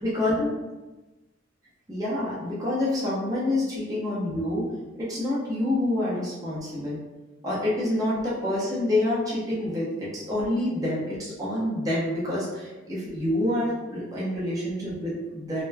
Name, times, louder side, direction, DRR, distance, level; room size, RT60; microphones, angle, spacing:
voice 1, 0.0-0.5 1.9-4.7 5.0-7.0 7.4-15.6, left 1 dB, 20° right, -8 dB, 0.7 m, -27 dB
2.9 x 2.1 x 2.2 m, 1.1 s
head